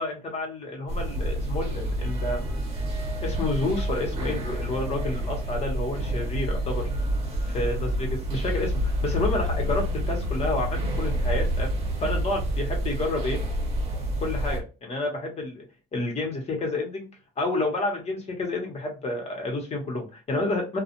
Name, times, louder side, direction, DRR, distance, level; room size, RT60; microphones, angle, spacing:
voice 1, 0.0-2.4 3.2-6.8 7.5-11.7 12.0-13.4 14.2-15.6 15.9-17.1 17.4-20.8, left 2 dB, 40° left, 2 dB, 1.2 m, -29 dB
sound 1, 0.9-14.6, equal, 35° right, 1.0 m, -28 dB
2.4 x 2.3 x 2.8 m, 0.31 s
cardioid pair, 110°, 17 cm